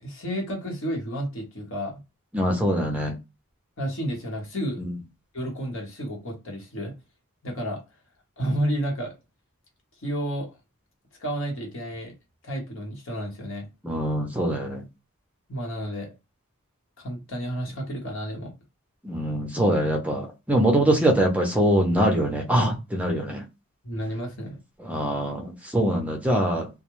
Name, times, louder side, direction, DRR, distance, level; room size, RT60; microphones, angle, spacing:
voice 1, 0.0-2.0 3.8-4.8 5.3-6.9 7.4-7.8 8.4-9.1 10.0-10.5 11.2-12.1 12.4-13.7 15.5-16.1 17.0-18.5 23.8-24.6, equal, 65° left, 1.1 m, -31 dB
voice 2, 2.3-3.1 13.8-14.8 19.0-23.4 24.8-26.7, right 1 dB, 5° right, 0.5 m, -23 dB
2.3 x 2.2 x 3.0 m
head